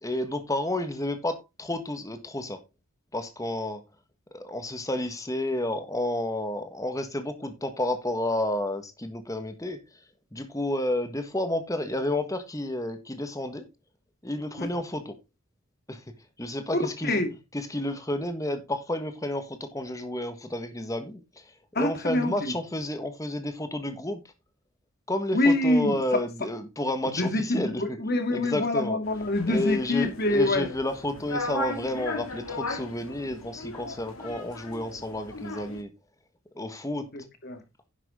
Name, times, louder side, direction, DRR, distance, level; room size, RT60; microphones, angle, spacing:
voice 1, 0.0-2.6 3.1-3.8 4.3-9.8 10.3-13.7 14.2-15.2 15.9-16.0 16.4-17.2 17.5-21.4 21.7-24.2 25.1-28.0 28.3-29.0 29.4-35.9 36.5-37.1, left 1 dB, 15° left, 1.5 m, -31 dB
voice 2, 16.7-17.3 21.8-22.5 25.3-26.2 27.0-30.7 37.1-37.6, left 2 dB, 45° left, 2.0 m, -26 dB
sound 1, 29.0-35.8, left 2 dB, 75° left, 2.4 m, -37 dB
10.5 x 7.4 x 3.7 m
head